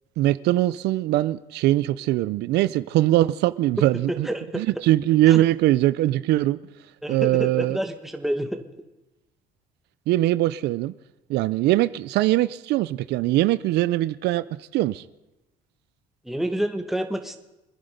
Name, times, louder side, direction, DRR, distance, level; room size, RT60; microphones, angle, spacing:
voice 1, 0.2-4.3 4.5-6.6 7.1-7.8 10.1-10.9 11.3-14.4 14.7-15.0, right 15 dB, 80° right, 0.5 m, -21 dB
voice 2, 4.2-4.6 5.3-5.4 7.0-8.6 16.3-17.4, right 1 dB, ahead, 1.7 m, -28 dB
26.0 x 10.0 x 5.2 m
cardioid pair, 110°, 17 cm